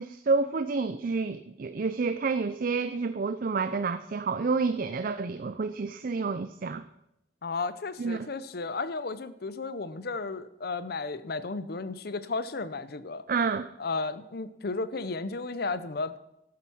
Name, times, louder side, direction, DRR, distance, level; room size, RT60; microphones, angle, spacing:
voice 1, 0.0-6.8 8.0-8.3 13.3-13.7, right 4 dB, 50° right, 11 dB, 0.5 m, -29 dB
voice 2, 7.4-13.2 13.8-16.2, left 3 dB, 60° left, 14 dB, 0.7 m, -34 dB
12.5 x 9.1 x 6.2 m, 0.85 s
head